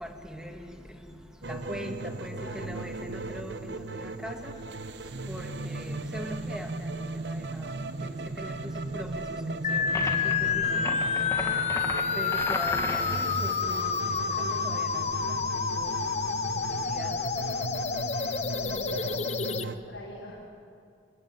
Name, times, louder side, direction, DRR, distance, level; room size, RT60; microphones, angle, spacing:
voice 1, 0.0-0.7 1.5-1.9 2.2-3.5 4.0-4.5 5.3-6.7 8.4-8.5 8.9-9.1 9.7-9.8 10.5-10.8 12.2-13.0 13.4-13.9 14.6-14.9 15.8-15.9 17.0-17.1, equal, 5° right, 4 dB, 1.6 m, -40 dB
sound 1, 1.4-19.8, right 2 dB, 60° right, 0.9 m, -36 dB
voice 2, 2.1-2.9 18.4-20.5, equal, 80° left, -7 dB, 5.2 m, -44 dB
sound 2, 9.6-19.6, left 6 dB, 35° left, 0.7 m, -29 dB
sound 3, 9.9-10.3 10.8-13.3, left 2 dB, 15° left, 1.5 m, -34 dB
25.5 x 14.5 x 9.1 m, 2.4 s
head